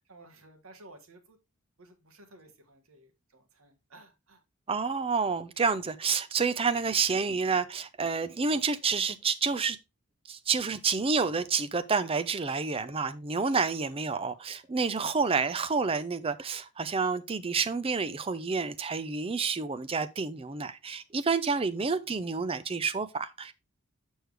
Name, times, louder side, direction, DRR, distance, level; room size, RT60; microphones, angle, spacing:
voice 1, 0.1-1.4 1.8-4.4 8.5-8.7 13.7-14.4 15.2-15.6 21.8-22.2, right 2 dB, 70° right, 1.6 m, -56 dB
voice 2, 4.7-9.8 10.3-23.5, right 5 dB, 25° right, 0.5 m, -29 dB
6.5 x 6.2 x 3.4 m
head